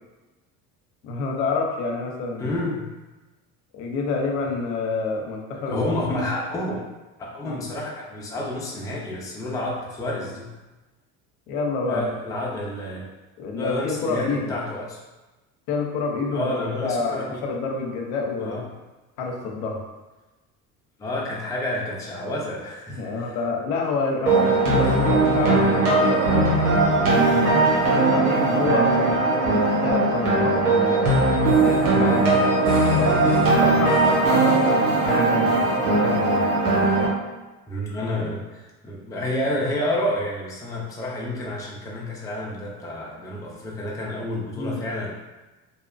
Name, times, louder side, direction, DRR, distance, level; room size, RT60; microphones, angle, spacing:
voice 1, 1.0-2.6 3.7-5.9 7.4-7.6 11.5-12.1 13.4-14.5 15.7-18.7 19.2-19.8 22.9-26.5 27.1-31.2 31.6-32.4 33.0-36.4 44.6-44.8, left 4 dB, 70° left, 1 dB, 0.6 m, -28 dB
voice 2, 2.4-2.9 5.7-6.8 7.2-10.5 11.9-13.0 13.6-15.0 16.3-17.4 18.4-18.7 21.0-23.4 24.4-24.5 33.8-33.9 37.7-45.1, left 1 dB, 10° left, -4 dB, 0.4 m, -29 dB
sound 1, 24.3-37.1, right 2 dB, 85° right, 1.0 m, -19 dB
2.7 x 2.1 x 2.4 m, 1.1 s
hypercardioid pair, 85°, 44 cm